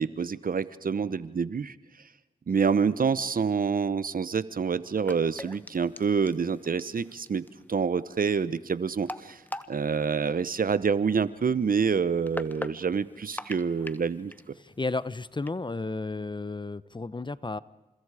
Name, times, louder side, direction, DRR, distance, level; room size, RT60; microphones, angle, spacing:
voice 1, 0.0-1.7 2.5-9.4 9.7-14.3, right 6 dB, 60° right, 16 dB, 1.0 m, -27 dB
sound 1, 4.8-15.5, left 1 dB, 10° left, 1.3 m, -43 dB
voice 2, 14.6-17.6, left 3 dB, 30° left, 17 dB, 0.9 m, -33 dB
30.0 x 27.0 x 5.0 m, 1.0 s
cardioid pair, 45°, 16 cm